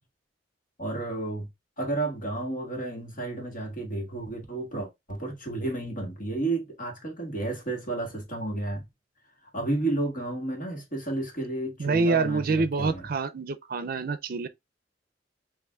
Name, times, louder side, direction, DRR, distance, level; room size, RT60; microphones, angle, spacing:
voice 1, 0.8-1.5 1.8-8.9 9.5-13.0, right 2 dB, 50° left, 1.6 m, -32 dB
voice 2, 11.8-14.5, right 3 dB, 55° right, 0.5 m, -26 dB
6.8 x 2.6 x 2.3 m
head